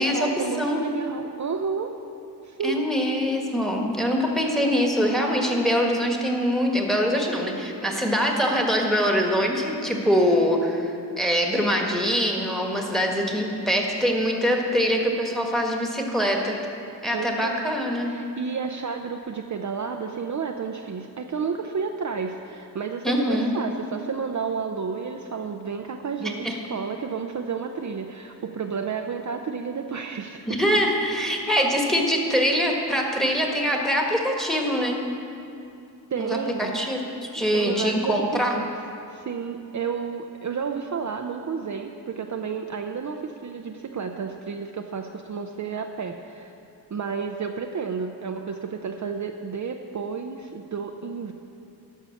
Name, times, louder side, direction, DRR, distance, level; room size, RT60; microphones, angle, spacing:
voice 1, 0.0-1.9 2.4-2.9 17.1-17.7 18.0-30.5 36.1-36.7 37.5-38.7 39.1-46.5 46.9-51.3, right 5 dB, 45° right, 4 dB, 0.5 m, -31 dB
voice 2, 0.6-0.9 2.6-16.6 17.0-18.1 23.0-23.5 26.2-26.5 30.5-35.0 36.2-38.5, equal, ahead, 0 dB, 1.5 m, -23 dB
12.0 x 5.5 x 7.1 m, 2.6 s
wide cardioid pair, 85°, 40 cm